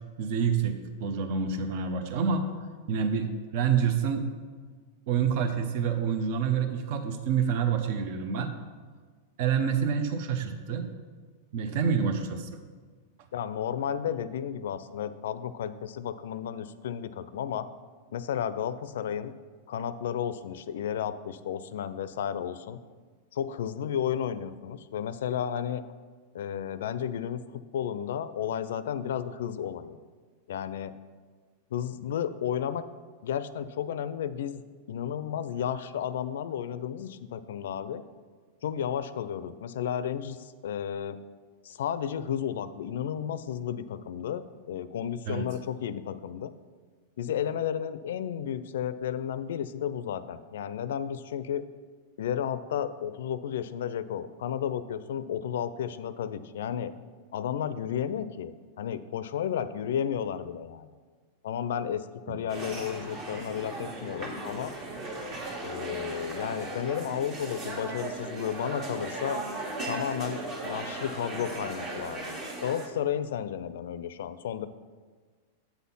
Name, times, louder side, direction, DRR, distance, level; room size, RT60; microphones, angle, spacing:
voice 1, 0.2-2.5 2.9-4.3 5.1-8.5 9.4-10.8 11.5-12.5 45.3-45.5, right 6 dB, 55° right, 8 dB, 0.6 m, -27 dB
voice 2, 13.3-17.7 18.1-19.3 19.7-22.8 23.3-25.8 26.3-27.4 27.7-30.0 30.5-30.9 31.7-32.9 33.2-34.6 34.9-38.0 38.6-41.2 41.6-46.5 47.2-51.7 52.2-56.9 57.3-60.9 61.4-64.7 65.6-69.4 69.9-72.4 72.6-74.7, left 9 dB, 80° left, 14 dB, 0.4 m, -32 dB
sound 1, 62.5-72.9, right 2 dB, 40° right, 1.4 m, -37 dB
8.0 x 4.2 x 5.5 m, 1.5 s
supercardioid pair, 135°, 0 cm